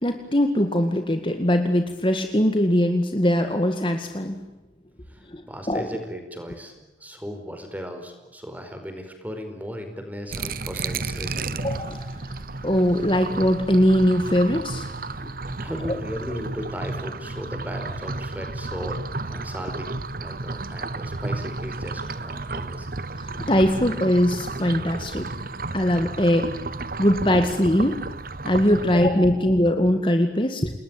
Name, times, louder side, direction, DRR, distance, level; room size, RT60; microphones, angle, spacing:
voice 1, 0.0-4.4 5.3-5.4 5.7-5.9 11.6-14.9 15.2-15.3 23.2-25.3 25.7-26.5 27.0-28.0 28.4-30.7, equal, 25° left, 6 dB, 2.0 m, -21 dB
voice 2, 5.1-6.7 7.0-11.6 15.6-22.9, equal, 10° right, 5 dB, 4.8 m, -36 dB
sound 1, 10.3-29.1, right 3 dB, 50° right, 1.1 m, -32 dB
30.0 x 20.5 x 9.2 m, 1.1 s
head